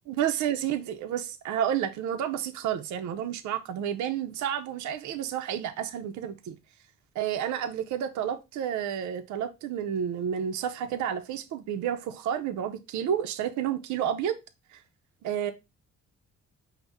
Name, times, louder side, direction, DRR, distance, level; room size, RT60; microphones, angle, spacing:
voice 1, 0.1-6.5 7.2-14.4 14.7-14.8 15.2-15.5, right 9 dB, 70° right, 0.5 m, -30 dB
5.2 x 2.1 x 3.4 m
cardioid pair, 90°, 30 cm